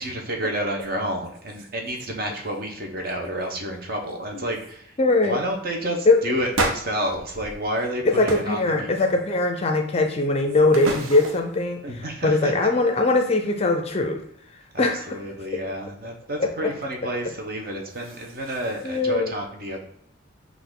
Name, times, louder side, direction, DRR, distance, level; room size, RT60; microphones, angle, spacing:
voice 1, 0.0-5.0 5.2-9.1 11.8-12.6 14.7-19.8, right 1 dB, 45° right, 2 dB, 0.8 m, -30 dB
sound 1, 0.8-0.9 1.2-2.1 2.3-2.7 3.0-3.5 4.1-4.2 4.5-4.7 5.2-5.4 6.5-7.9 8.3-8.6 9.0-9.5 10.0-11.6 17.6-19.0, right 2 dB, 85° right, 0.7 m, -33 dB
voice 2, 5.0-5.4 6.1-6.2 8.2-11.8 12.2-14.2 14.8-15.0 16.4-16.5 18.8-19.3, left 2 dB, 30° left, 4 dB, 0.4 m, -21 dB
5.6 x 2.5 x 3.6 m, 0.66 s
head